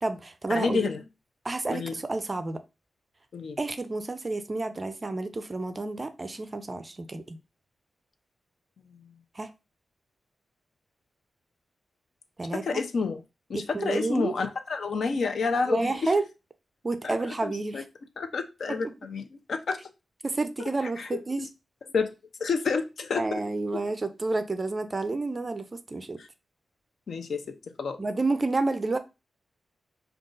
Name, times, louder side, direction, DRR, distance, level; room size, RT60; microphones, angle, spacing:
voice 1, 0.0-0.9 1.4-2.6 3.6-7.4 9.4-9.5 12.4-12.8 13.5-14.4 15.7-16.3 16.8-17.8 18.7-18.8 20.2-21.5 23.2-26.2 28.0-29.0, right 3 dB, 25° right, 0.4 m, -30 dB
voice 2, 0.5-1.0 1.7-1.9 3.3-3.6 8.8-9.0 12.5-13.2 13.5-16.1 17.0-17.1 17.4-17.8 18.2-19.8 21.0-21.5 21.9-22.1 22.4-23.4 26.2-26.3 27.1-27.4 27.8-28.0, left 4 dB, 65° left, 0.6 m, -29 dB
5.1 x 2.3 x 3.8 m
wide cardioid pair, 150°, 0 cm